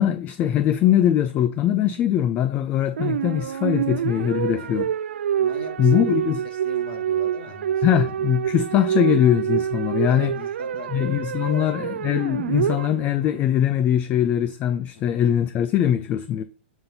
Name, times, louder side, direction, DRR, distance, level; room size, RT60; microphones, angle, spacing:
voice 1, 0.0-4.9 5.8-6.4 7.8-10.3 10.9-16.4, left 10 dB, 25° left, 0.4 m, -21 dB
sound 1, 3.0-13.4, right 9 dB, 85° right, 0.4 m, -26 dB
voice 2, 5.4-7.8 10.1-10.9 11.3-11.8 14.9-15.2, left 5 dB, 65° left, 2.9 m, -40 dB
7.0 x 5.4 x 3.9 m
hypercardioid pair, 145°, 6 cm